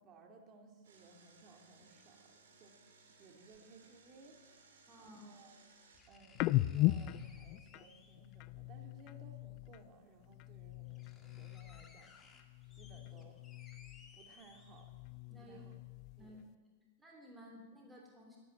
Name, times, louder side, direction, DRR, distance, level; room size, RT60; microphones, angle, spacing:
voice 1, 0.0-5.6 6.1-12.1 12.7-13.4 14.1-14.9 15.4-15.8 16.2-16.4, right 3 dB, 35° right, 3 dB, 2.5 m, -60 dB
Engine, 0.8-6.0, right 4 dB, 80° right, 2.9 m, -64 dB
sound 1, 3.5-3.6 5.1-5.2 5.9-8.3 9.7-9.8 10.4-10.5 10.7-15.2 15.6-15.7, left 4 dB, 20° left, 2.1 m, -62 dB
voice 2, 4.9-5.2 15.3-15.6 16.2-16.4 17.0-18.4, equal, 10° right, -1 dB, 3.2 m, -55 dB
sound 2, 6.3-9.9 10.2-12.1 12.3-14.2 14.6-16.4, left 17 dB, 45° left, 0.4 m, -39 dB
12.5 x 11.5 x 8.7 m, 1.4 s
hypercardioid pair, 120°, 0 cm